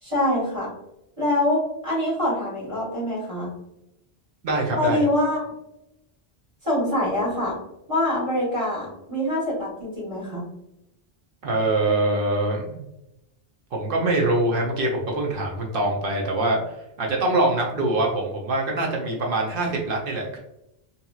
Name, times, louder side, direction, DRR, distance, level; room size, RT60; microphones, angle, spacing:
voice 1, 0.0-0.7 1.2-3.5 4.7-5.4 6.6-7.5 7.9-10.4, left 1 dB, 35° right, -7 dB, 1.3 m, -24 dB
voice 2, 4.4-5.0 11.4-12.8 13.7-20.4, right 2 dB, 65° right, -1 dB, 0.8 m, -24 dB
2.8 x 2.7 x 2.3 m, 0.86 s
omnidirectional pair, 1.0 m